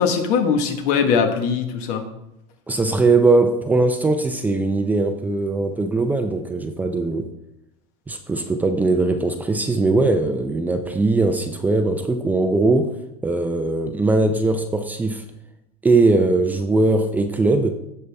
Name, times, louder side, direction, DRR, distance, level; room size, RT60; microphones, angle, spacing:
voice 1, 0.0-2.1, left 6 dB, 55° left, 6 dB, 1.4 m, -20 dB
voice 2, 2.7-7.3 8.1-12.9 13.2-15.2 15.8-17.7, right 3 dB, 10° right, 6 dB, 0.6 m, -20 dB
15.5 x 5.7 x 3.5 m, 0.85 s
supercardioid pair, 140°, 16 cm